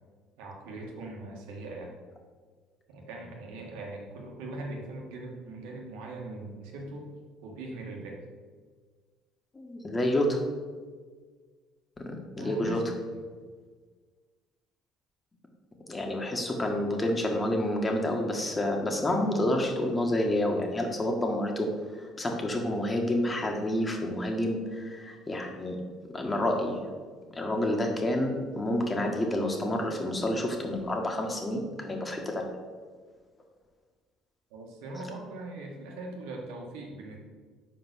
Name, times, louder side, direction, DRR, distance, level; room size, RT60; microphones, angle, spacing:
voice 1, 0.4-1.9 2.9-7.1 7.4-8.2 12.4-12.9 34.5-37.2, right 2 dB, 80° right, 0 dB, 1.6 m, -40 dB
voice 2, 9.5-10.4 12.0-12.8 15.9-21.7 21.9-25.8 26.1-26.8 27.3-32.5, left 1 dB, 20° left, 2 dB, 1.6 m, -29 dB
5.7 x 4.7 x 6.3 m, 1.5 s
supercardioid pair, 75°, 0 cm